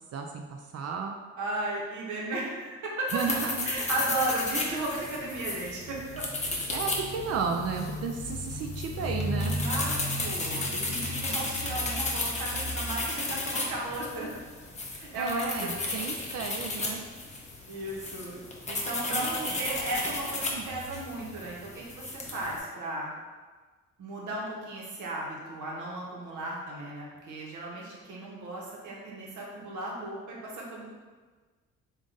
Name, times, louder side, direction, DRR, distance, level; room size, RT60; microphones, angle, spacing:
voice 1, 0.1-0.4 0.7-1.2 3.1-3.7 6.7-9.6 15.1-17.0 19.1-19.6 20.5-20.6, right 5 dB, 55° right, 3 dB, 0.4 m, -33 dB
voice 2, 1.4-3.1 3.6-6.3 9.4-14.3 14.9-16.0 17.7-18.4 18.7-23.1 24.0-30.8, right 1 dB, 75° right, -3 dB, 1.1 m, -35 dB
sound 1, 3.1-22.6, left 2 dB, 25° left, 0.7 m, -33 dB
3.6 x 2.5 x 3.8 m, 1.4 s
cardioid pair, 90°, 30 cm